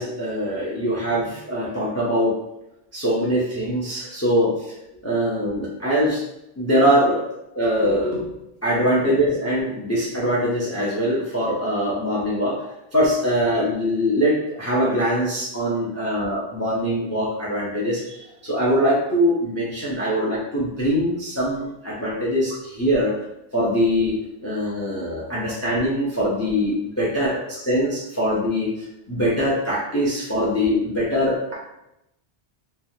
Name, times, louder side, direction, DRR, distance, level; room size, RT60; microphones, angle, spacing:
voice 1, 0.0-2.4 2.9-4.5 5.0-6.2 6.6-7.2 7.5-8.3 8.6-23.1 23.5-24.2 24.4-28.7 29.1-31.5, equal, 20° left, -6 dB, 0.5 m, -22 dB
3.1 x 2.1 x 2.7 m, 0.86 s
omnidirectional pair, 1.1 m